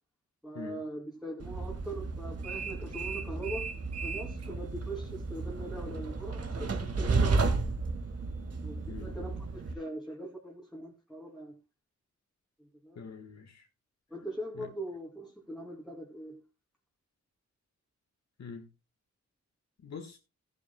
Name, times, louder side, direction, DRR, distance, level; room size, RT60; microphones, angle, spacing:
voice 1, 0.4-3.7 4.0-7.4 8.6-11.6 12.6-13.0 14.1-16.4, right 1 dB, ahead, 2.6 m, -41 dB
Train, 1.4-9.7, right 3 dB, 55° right, 1.9 m, -33 dB
voice 2, 12.9-13.7 14.5-14.7 18.4-18.7 19.8-20.2, left 5 dB, 65° left, 1.5 m, -44 dB
16.0 x 11.0 x 2.2 m
wide cardioid pair, 130°, 29 cm